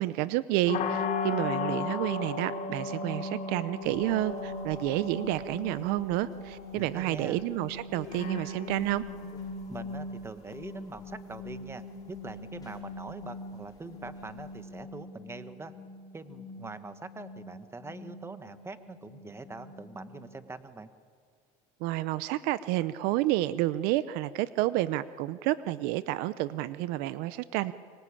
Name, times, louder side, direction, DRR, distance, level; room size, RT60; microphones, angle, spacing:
voice 1, 0.0-9.0 21.8-27.7, right 16 dB, 75° right, 15 dB, 0.7 m, -30 dB
sound 1, 0.7-20.5, left 4 dB, 55° left, 3.6 m, -38 dB
sound 2, 3.8-14.8, left 4 dB, 25° left, 5.7 m, -59 dB
voice 2, 6.7-7.4 9.7-15.7 16.1-20.9, right 3 dB, 15° right, 10 dB, 1.4 m, -43 dB
24.0 x 24.0 x 8.6 m, 2.1 s
supercardioid pair, 110°, 16 cm